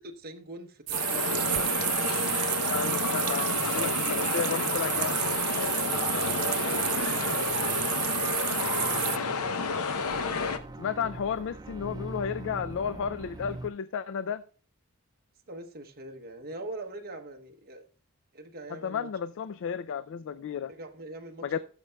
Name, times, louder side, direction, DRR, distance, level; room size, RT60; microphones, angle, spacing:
voice 1, 0.1-1.7 2.8-3.1 4.0-4.5 5.8-7.3 15.5-17.8 18.3-19.1 20.7-21.6, right 2 dB, 45° right, 0.9 m, -43 dB
sound 1, 0.9-10.6, left 4 dB, 90° left, 0.8 m, -30 dB
sound 2, 0.9-9.2, right 17 dB, 85° right, 0.4 m, -30 dB
voice 2, 2.7-5.1 10.8-14.4 18.7-20.7 21.4-21.6, left 7 dB, 60° left, 0.3 m, -32 dB
sound 3, 6.7-13.7, right 2 dB, 20° right, 0.4 m, -44 dB
17.5 x 6.7 x 2.2 m
head